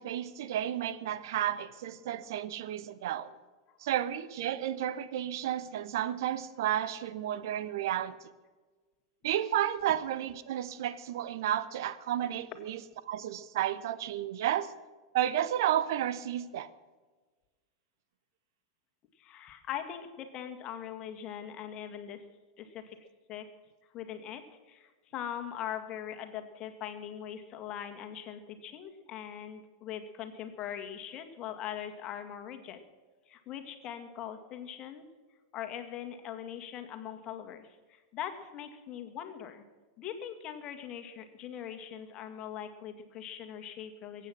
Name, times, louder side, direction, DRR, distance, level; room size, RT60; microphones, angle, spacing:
voice 1, 0.0-3.3 3.8-8.3 9.2-12.8 13.1-14.7 15.1-16.7, right 11 dB, 60° right, 15 dB, 1.0 m, -32 dB
voice 2, 19.2-22.2 22.6-23.5 23.9-32.8 33.3-35.0 35.5-39.6 40.0-44.3, left 9 dB, 40° left, 7 dB, 2.1 m, -41 dB
23.0 x 9.3 x 6.1 m, 1.3 s
figure-of-eight pair, 90°, 2 cm